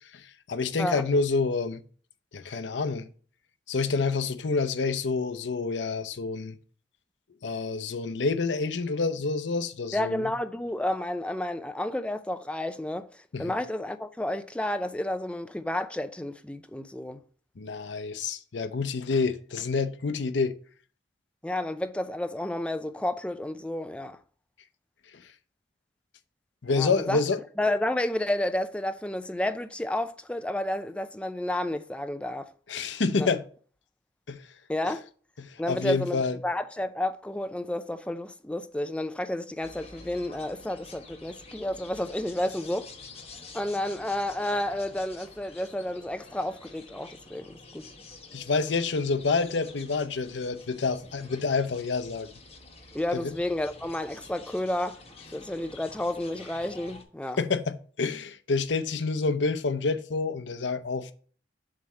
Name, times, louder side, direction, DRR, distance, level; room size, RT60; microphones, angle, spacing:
voice 1, 0.1-1.8 2.3-3.1 3.7-6.6 7.4-10.3 13.3-13.5 17.6-20.5 26.6-27.4 32.7-33.4 34.3-34.4 35.4-36.4 48.3-52.3 53.1-53.3 57.4-61.1, left 4 dB, 85° left, 0.7 m, -28 dB
voice 2, 9.9-13.1 13.4-17.2 21.4-24.2 26.7-27.2 27.6-32.5 33.2-33.3 34.7-35.0 35.6-42.9 43.5-47.9 52.9-55.0 55.3-57.4, left 1 dB, 5° left, 0.4 m, -31 dB
sound 1, 39.6-57.0, left 3 dB, 35° left, 1.2 m, -49 dB
7.5 x 3.2 x 5.6 m
head